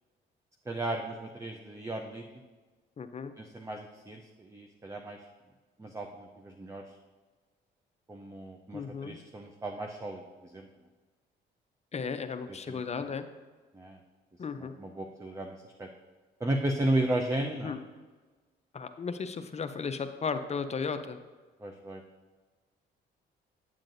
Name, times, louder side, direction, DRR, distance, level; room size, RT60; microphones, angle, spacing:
voice 1, 0.7-2.2 3.4-5.2 5.8-6.8 8.1-10.7 12.7-12.8 13.7-14.0 14.6-15.9 16.4-17.8 21.6-22.0, right 1 dB, 15° right, 3 dB, 0.6 m, -34 dB
voice 2, 3.0-3.3 8.7-9.2 11.9-13.2 14.4-14.7 17.6-17.8 18.7-21.2, left 5 dB, 35° left, 9 dB, 0.5 m, -35 dB
8.9 x 7.3 x 2.6 m, 1.3 s
cardioid pair, 90°, 20 cm